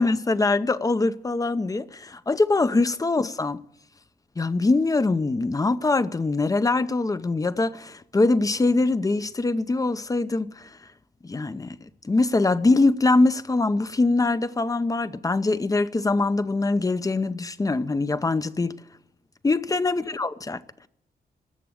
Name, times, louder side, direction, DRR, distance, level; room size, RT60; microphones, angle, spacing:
voice 1, 0.0-3.6 4.4-10.7 11.2-11.8 12.0-18.7 19.4-20.6, left 3 dB, 20° left, 0.7 m, -23 dB
18.5 x 7.5 x 9.7 m
wide cardioid pair, 135°, 17 cm